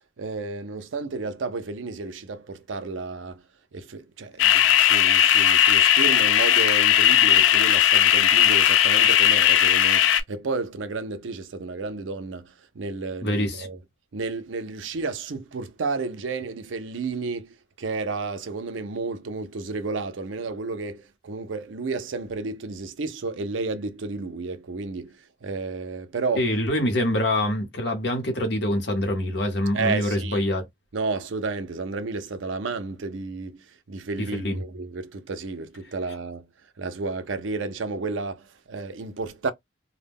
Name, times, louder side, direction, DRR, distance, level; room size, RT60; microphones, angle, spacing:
voice 1, 0.2-3.4 3.7-13.8 14.1-26.5 29.7-30.5 30.9-36.5 36.8-39.5, right 3 dB, 90° right, 0.5 m, -32 dB
sound 1, 4.4-10.2, left 11 dB, 80° left, 0.3 m, -18 dB
voice 2, 13.2-13.7 26.4-30.6 34.3-34.6, left 1 dB, 60° left, 0.9 m, -25 dB
2.2 x 2.1 x 3.5 m
head